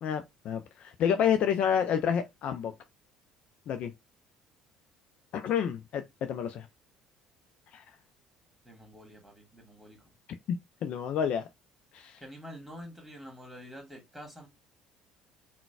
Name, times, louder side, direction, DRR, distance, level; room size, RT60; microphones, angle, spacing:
voice 1, 0.0-2.7 3.7-3.9 5.3-6.0 6.3-6.7 7.7-7.8 10.8-11.4 11.9-12.2, left 8 dB, 55° left, 0.3 m, -29 dB
voice 2, 8.6-10.0 12.2-14.5, equal, 5° right, 1.6 m, -47 dB
3.8 x 2.1 x 2.3 m
hypercardioid pair, 60°, 2 cm